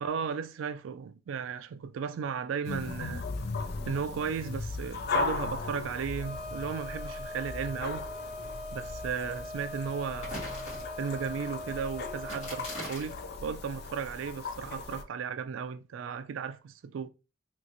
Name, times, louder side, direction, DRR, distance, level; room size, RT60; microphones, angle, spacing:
voice 1, 0.0-3.3 3.8-8.1 8.7-10.4 11.0-17.1, right 6 dB, 85° right, 0.3 m, -35 dB
sound 1, 2.6-15.0, left 4 dB, 55° left, 0.4 m, -38 dB
Wind instrument woodwind instrument, 6.2-12.9, left 1 dB, 20° right, 0.4 m, -42 dB
sound 2, 10.2-11.2 12.2-13.2, left 1 dB, 35° left, 1.7 m, -41 dB
3.1 x 2.9 x 2.5 m
head